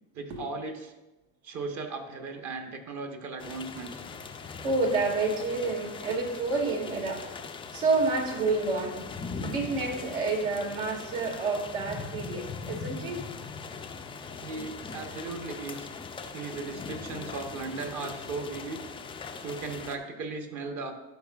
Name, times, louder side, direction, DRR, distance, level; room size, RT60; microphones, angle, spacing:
voice 1, 0.1-0.9 1.4-4.0 14.4-15.9 16.3-18.8 19.4-20.9, right 4 dB, 40° right, 5 dB, 1.1 m, -37 dB
sound 1, 3.4-20.0, left 5 dB, 15° left, 0.4 m, -40 dB
voice 2, 4.6-7.2 7.7-9.0 9.4-13.2, right 3 dB, 75° right, 0 dB, 2.0 m, -29 dB
12.5 x 5.0 x 2.3 m, 1.0 s
supercardioid pair, 100°, 42 cm